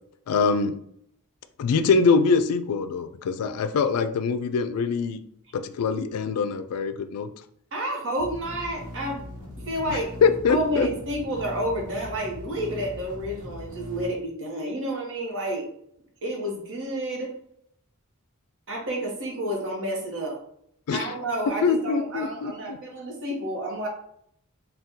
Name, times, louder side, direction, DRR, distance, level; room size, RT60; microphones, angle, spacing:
voice 1, 0.3-0.8 1.6-5.2 5.5-7.3 9.9-10.9 20.9-21.1 21.6-22.8, left 5 dB, 90° left, 10 dB, 0.3 m, -23 dB
voice 2, 7.7-9.3 9.7-10.1 10.5-15.6 16.2-17.3 18.7-20.4 20.9-23.9, right 1 dB, 60° right, 0 dB, 0.9 m, -30 dB
sound 1, 8.2-14.1, left 1 dB, 80° right, 1.1 m, -40 dB
2.7 x 2.3 x 3.6 m, 0.70 s
head